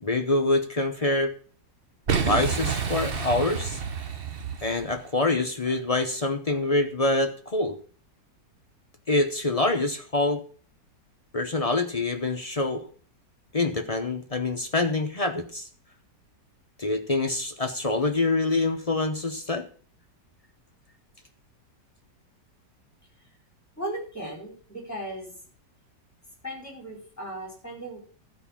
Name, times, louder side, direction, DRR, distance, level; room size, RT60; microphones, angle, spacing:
voice 1, 0.0-1.3 2.3-3.8 4.6-7.7 9.1-10.4 11.3-12.8 13.5-15.7 16.8-19.7, left 2 dB, 40° left, 5 dB, 0.5 m, -25 dB
Boom, 2.1-5.0, right 6 dB, 40° right, 0.9 m, -29 dB
voice 2, 23.8-25.3 26.4-28.0, right 1 dB, 10° left, -1 dB, 4.2 m, -36 dB
12.5 x 5.3 x 7.2 m, 0.43 s
omnidirectional pair, 1.9 m